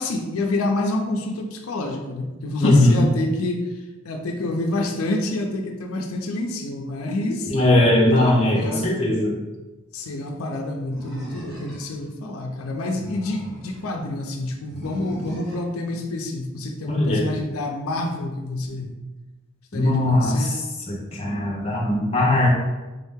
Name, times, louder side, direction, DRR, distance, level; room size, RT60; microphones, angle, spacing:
voice 1, 0.0-7.5 8.1-8.9 9.9-19.0 19.7-20.6, left 2 dB, 85° left, 2 dB, 0.5 m, -28 dB
voice 2, 2.6-3.0 7.5-9.3 16.9-17.2 19.7-20.6 20.9-22.5, left 1 dB, 25° left, -2 dB, 0.6 m, -19 dB
Animal, 10.9-12.1 12.8-13.9 14.7-15.7, equal, ahead, 1.2 m, -38 dB
3.6 x 2.7 x 3.5 m, 1.2 s
head